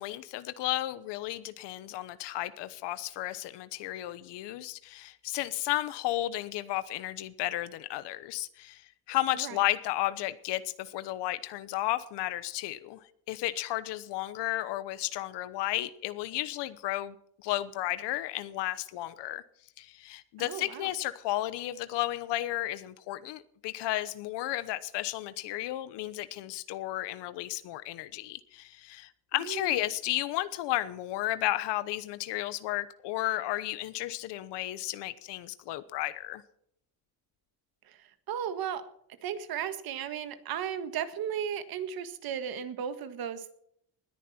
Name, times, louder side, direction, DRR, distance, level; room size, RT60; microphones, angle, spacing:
voice 1, 0.0-8.8 9.1-17.1 17.4-19.4 19.8-36.4, left 15 dB, 85° left, 14 dB, 1.1 m, -33 dB
voice 2, 20.4-20.9 29.3-29.7 37.9-38.9 39.2-43.5, right 8 dB, 60° right, 11 dB, 1.7 m, -35 dB
20.0 x 10.0 x 4.4 m, 0.69 s
cardioid pair, 145°, 41 cm